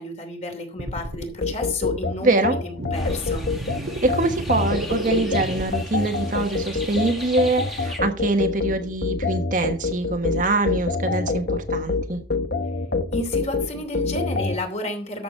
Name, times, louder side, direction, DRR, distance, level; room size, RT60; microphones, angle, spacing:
voice 1, 0.0-3.5 13.1-15.2, left 1 dB, 40° left, 4 dB, 2.8 m, -31 dB
sound 1, 0.8-1.3 1.8-1.9 2.8-5.7, right 1 dB, 85° right, 1.6 m, -32 dB
sound 2, 1.4-14.6, left 3 dB, 65° left, 1.1 m, -26 dB
voice 2, 2.2-2.6 4.0-12.2, right 2 dB, 50° right, 6 dB, 1.3 m, -24 dB
sound 3, 2.9-8.0, left 1 dB, ahead, 1.7 m, -38 dB
13.0 x 7.0 x 4.5 m, 0.40 s
head